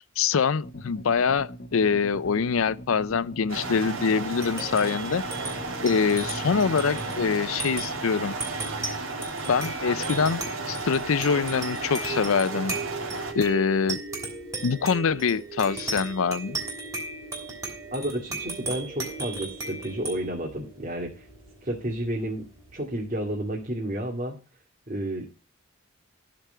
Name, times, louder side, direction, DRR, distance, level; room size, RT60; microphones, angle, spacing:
voice 1, 0.0-5.2 5.8-8.4 9.5-10.4 10.7-12.8 13.3-14.0 14.6-16.6, left 5 dB, 80° left, 0.5 m, -24 dB
sound 1, 0.6-7.4, equal, 45° left, 1.3 m, -42 dB
sound 2, 3.5-13.3, right 3 dB, 80° right, 2.4 m, -33 dB
sound 3, 4.2-23.1, right 3 dB, 15° right, 3.1 m, -37 dB
voice 2, 17.9-21.2 21.6-22.4 22.7-24.3 24.9-25.2, right 1 dB, 35° right, 2.2 m, -31 dB
13.0 x 4.8 x 5.6 m
head